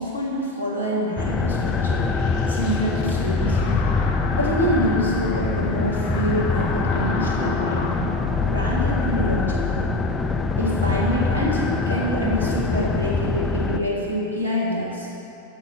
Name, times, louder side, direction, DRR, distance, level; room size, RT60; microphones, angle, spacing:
voice 1, 0.0-2.1 2.5-3.8 4.3-9.9 10.6-15.1, equal, 85° right, -4 dB, 1.6 m, -26 dB
sound 1, 1.2-13.8, left 4 dB, 15° left, 0.4 m, -24 dB
sound 2, 1.6-8.1, left 4 dB, 45° left, 0.7 m, -36 dB
6.7 x 6.2 x 5.6 m, 3.0 s
figure-of-eight pair, 90°, 0 cm